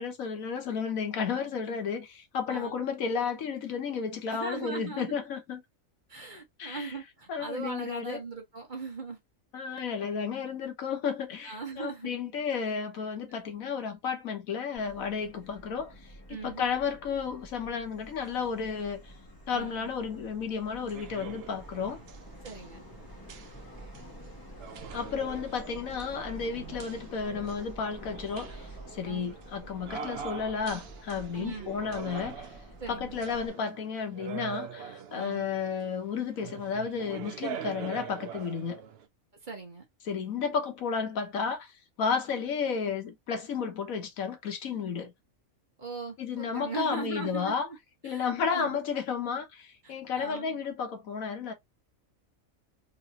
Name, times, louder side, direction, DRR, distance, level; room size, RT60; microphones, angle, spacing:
voice 1, 0.0-5.6 6.6-6.9 7.3-8.2 9.5-15.9 16.3-19.1 19.5-22.0 24.9-32.5 32.9-38.8 40.0-45.1 46.2-47.7 48.0-51.5, left 6 dB, 85° left, 1.4 m, -32 dB
voice 2, 4.3-5.1 6.1-9.2 11.4-12.1 16.3-16.6 19.5-19.9 22.4-22.8 29.0-29.4 31.3-31.8 32.8-33.2 35.1-35.5 39.4-39.8 45.8-47.8 48.0-48.8 49.8-50.6, right 4 dB, 40° right, 1.2 m, -39 dB
Subway metro underground, 14.7-33.5, equal, 15° left, 1.1 m, -48 dB
sound 1, 20.7-39.1, right 7 dB, 60° right, 0.7 m, -44 dB
3.8 x 3.0 x 2.8 m
omnidirectional pair, 1.4 m